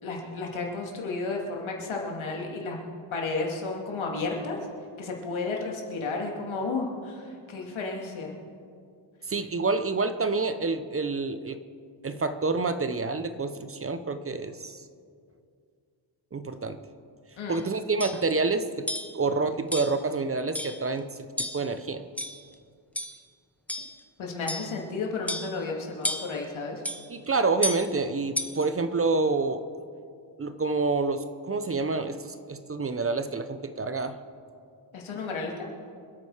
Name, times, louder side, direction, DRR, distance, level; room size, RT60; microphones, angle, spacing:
voice 1, 0.0-2.8 3.1-4.6 5.0-8.3 17.4-17.6 24.2-26.8 34.9-35.6, left 3 dB, 90° left, 0 dB, 2.5 m, -32 dB
voice 2, 9.3-11.6 12.0-14.8 16.3-16.8 17.5-18.9 19.1-21.1 21.4-22.1 27.1-29.7 30.4-34.2, right 3 dB, 30° right, 10 dB, 0.6 m, -28 dB
sound 1, 17.5-17.6 18.0-18.2 18.9-19.2 19.7-20.0 20.5-20.9 21.4-21.7 22.2-22.5 23.0-23.2 23.7-24.0 24.5-24.8 25.3-25.6 26.0-26.4 26.8-27.0 27.6-27.9 28.4-28.7, left 1 dB, 5° left, 0.8 m, -32 dB
26.0 x 8.8 x 4.8 m, 2.3 s
wide cardioid pair, 140°, 46 cm